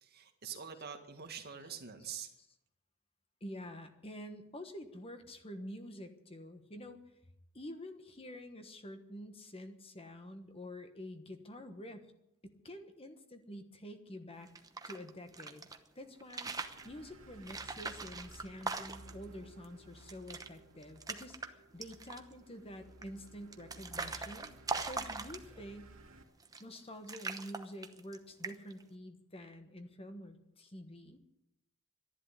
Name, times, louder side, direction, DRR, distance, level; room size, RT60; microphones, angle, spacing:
voice 1, 0.0-2.3, right 7 dB, 50° right, 5 dB, 1.9 m, -45 dB
voice 2, 3.4-7.0 7.5-12.1 12.4-14.5 14.8-15.7 15.9-16.5 16.8-25.9 26.6-31.2, equal, 25° left, 7 dB, 1.3 m, -48 dB
sound 1, 14.4-15.8 16.2-16.9 17.4-19.2 19.6-19.7 20.0-20.5 20.8-21.5 21.8-22.3 23.0-25.7 26.4-26.8 27.1-28.2 28.4-28.8, right 4 dB, 15° right, 0.9 m, -41 dB
sound 2, 16.4-26.2, right 1 dB, 70° right, 2.5 m, -57 dB
12.5 x 11.0 x 9.7 m, 0.84 s
head